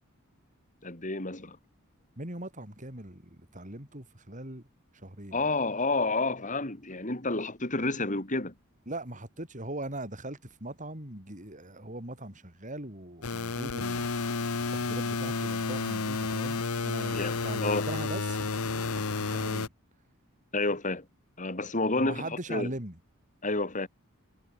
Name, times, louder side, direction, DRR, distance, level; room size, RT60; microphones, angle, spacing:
voice 1, 0.8-1.6 5.3-8.5 17.1-17.3 17.6-17.9 20.5-21.0 21.4-22.7 23.4-23.9, left 2 dB, 35° left, 3.5 m, -30 dB
voice 2, 2.2-4.7 4.9-5.5 8.9-14.1 14.7-19.7 22.0-23.0, right 1 dB, 35° right, 6.6 m, -40 dB
sound 1, 13.2-19.7, left 4 dB, 90° left, 1.2 m, -31 dB
head